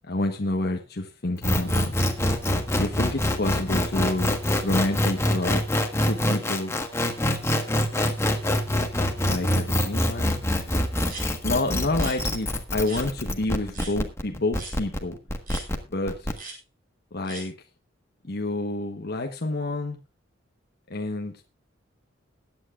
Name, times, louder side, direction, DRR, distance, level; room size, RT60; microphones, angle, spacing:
voice 1, 0.0-1.9 2.8-5.7 6.0-6.8 9.3-10.4 11.4-15.2 15.9-16.3 17.1-17.5 18.2-20.0 20.9-21.4, left 2 dB, 55° left, 1.2 m, -28 dB
sound 1, 1.4-16.3, left 1 dB, 15° left, 1.4 m, -25 dB
sound 2, 11.1-11.3 11.9-12.2 12.9-13.0 13.7-13.9 14.5-14.8 15.5-15.6 16.3-16.6 17.2-17.4, right 3 dB, 50° right, 5.1 m, -38 dB
21.5 x 9.2 x 2.4 m
head